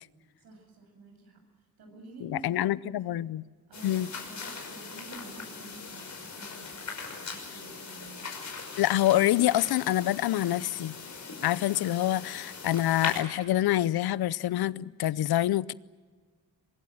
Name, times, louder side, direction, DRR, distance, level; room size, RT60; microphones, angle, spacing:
voice 1, 0.4-1.4 1.8-2.6 3.0-3.1 3.7-8.4, right 2 dB, 75° right, 7.8 m, -49 dB
voice 2, 2.2-3.4 3.8-4.1 8.8-11.0 11.4-15.7, left 13 dB, 80° left, 0.7 m, -26 dB
sound 1, 3.7-13.2, left 4 dB, 45° left, 5.6 m, -40 dB
24.0 x 22.0 x 7.7 m
cardioid pair, 110°, 37 cm